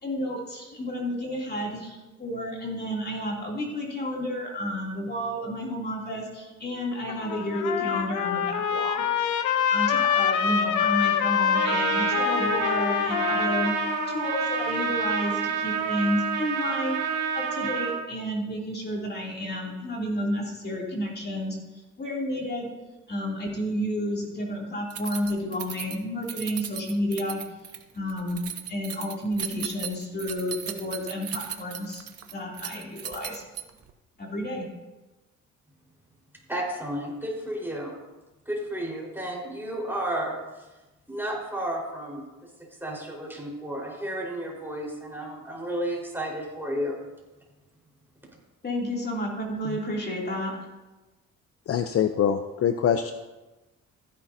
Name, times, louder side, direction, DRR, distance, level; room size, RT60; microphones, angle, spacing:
voice 1, 0.0-9.3 9.7-13.8 14.1-17.0 17.3-21.6 22.0-22.7 23.1-27.4 27.9-32.0 32.3-33.4 34.2-34.7 48.6-50.6, equal, 35° left, -2 dB, 2.8 m, -31 dB
Trumpet, 6.9-15.3, left 8 dB, 80° left, 0.9 m, -26 dB
Trumpet 2, 11.5-18.0, right 7 dB, 90° right, 1.2 m, -28 dB
Keys jangling, 24.9-33.9, right 9 dB, 50° right, 1.0 m, -37 dB
voice 2, 36.5-37.9 38.5-40.3 41.1-42.2 42.8-47.0, right 1 dB, 5° right, -3 dB, 4.3 m, -32 dB
voice 3, 51.7-53.1, left 8 dB, 50° left, 9 dB, 0.6 m, -24 dB
15.0 x 10.0 x 2.7 m, 1.1 s
cardioid pair, 90°, 30 cm